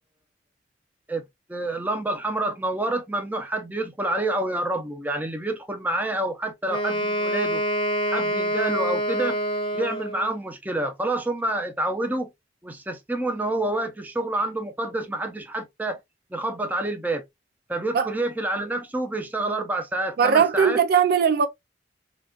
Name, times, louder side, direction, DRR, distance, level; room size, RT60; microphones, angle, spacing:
voice 1, 1.5-7.6 8.1-9.4 9.7-12.3 12.6-16.0 16.3-17.2 17.7-20.8, right 1 dB, 10° right, 0.6 m, -28 dB
Wind instrument woodwind instrument, 6.7-10.4, right 1 dB, 30° left, 0.7 m, -26 dB
voice 2, 20.2-21.5, right 7 dB, 55° right, 0.4 m, -19 dB
3.9 x 2.4 x 2.2 m
head